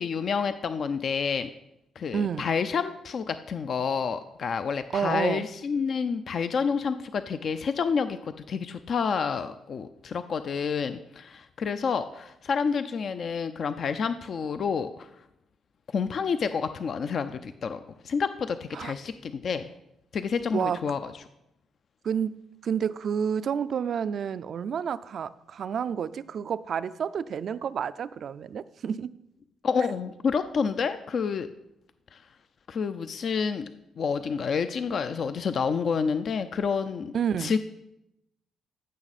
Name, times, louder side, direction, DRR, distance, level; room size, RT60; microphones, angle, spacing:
voice 1, 0.0-1.5 2.0-15.1 15.9-17.8 18.0-19.7 20.1-21.1 29.6-31.5 32.1-32.2 32.7-33.7 34.0-37.1 37.4-37.6, left 6 dB, 55° left, 10 dB, 0.4 m, -29 dB
voice 2, 2.1-2.5 4.9-5.4 18.7-18.9 20.5-20.8 22.0-22.3 22.6-29.1 37.1-37.5, right 7 dB, 60° right, 15 dB, 0.4 m, -29 dB
15.0 x 6.1 x 4.1 m, 0.86 s
cardioid pair, 90°, 0 cm